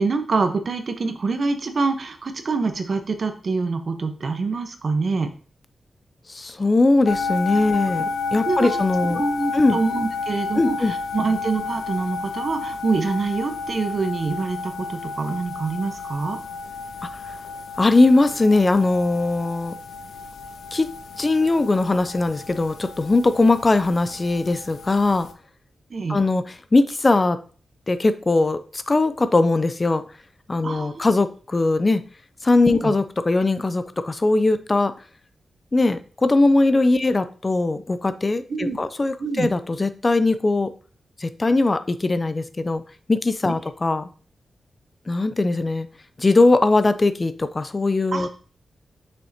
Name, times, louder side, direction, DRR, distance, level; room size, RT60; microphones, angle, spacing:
voice 1, 0.0-5.3 8.5-8.7 9.1-16.4 25.9-26.2 30.6-31.0 32.7-32.9 38.5-38.8 39.2-39.5 48.1-48.3, right 4 dB, 55° right, 7 dB, 1.0 m, -25 dB
voice 2, 6.3-9.2 9.5-9.8 10.6-10.9 17.8-19.7 20.7-20.9 21.2-25.3 26.1-27.4 27.9-30.0 30.5-32.0 32.4-34.9 35.7-40.7 41.2-42.8 43.1-44.1 45.1-45.9 46.2-48.3, left 2 dB, 30° left, 12 dB, 0.5 m, -20 dB
sound 1, 7.0-25.3, left 4 dB, 80° left, 0.6 m, -32 dB
6.6 x 5.6 x 2.8 m, 0.40 s
cardioid pair, 80°, 0 cm